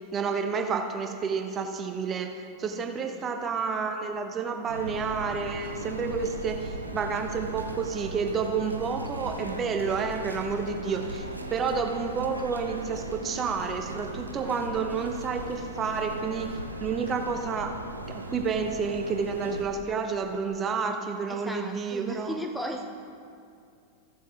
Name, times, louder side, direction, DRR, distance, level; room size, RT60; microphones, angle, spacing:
voice 1, 0.1-11.2 11.5-17.8 18.1-22.4, right 5 dB, 25° right, 5 dB, 1.0 m, -30 dB
sound 1, 4.7-19.6, right 1 dB, 85° right, 0.7 m, -38 dB
voice 2, 21.3-22.9, equal, ahead, 3 dB, 0.7 m, -36 dB
15.0 x 7.5 x 3.6 m, 2.5 s
figure-of-eight pair, 90°, 0 cm